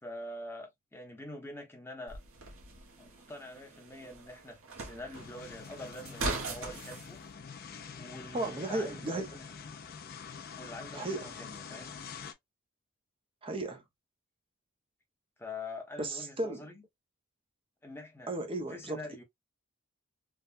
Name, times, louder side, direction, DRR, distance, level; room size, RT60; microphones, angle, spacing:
voice 1, 0.0-2.2 3.0-7.2 7.9-9.6 10.6-11.9 15.4-16.8 17.8-18.3 18.7-19.2, left 1 dB, 10° left, 0.9 m, -45 dB
sound 1, 2.1-7.1, right 3 dB, 70° right, 1.0 m, -40 dB
sound 2, 5.1-12.3, left 6 dB, 45° left, 0.5 m, -46 dB
voice 2, 8.3-9.3 10.9-11.3 13.4-13.8 16.0-16.7 18.3-19.0, right 2 dB, 25° right, 0.6 m, -35 dB
3.5 x 2.2 x 2.5 m
head